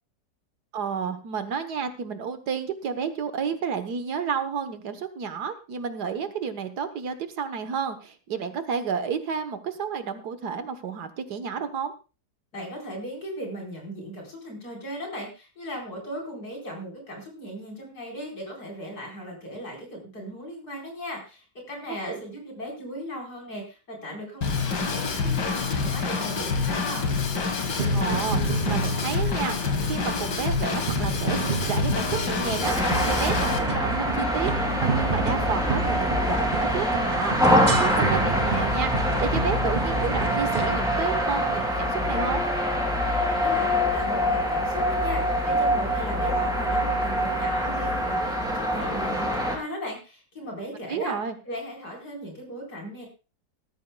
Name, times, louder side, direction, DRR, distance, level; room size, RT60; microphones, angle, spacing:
voice 1, 0.7-11.9 21.9-22.2 27.9-28.4 28.7-29.6 29.9-42.4 50.9-51.4, right 6 dB, 70° right, 9 dB, 1.7 m, -31 dB
voice 2, 12.5-27.1 43.3-51.1 51.4-53.1, equal, 65° left, -1 dB, 5.1 m, -37 dB
Drum kit / Drum, 24.4-33.6, left 4 dB, 85° left, 2.4 m, -27 dB
sound 1, 27.5-40.8, right 5 dB, 40° right, 0.6 m, -31 dB
sound 2, 32.6-49.6, equal, ahead, 3.2 m, -25 dB
18.5 x 13.0 x 2.3 m, 0.31 s
omnidirectional pair, 1.8 m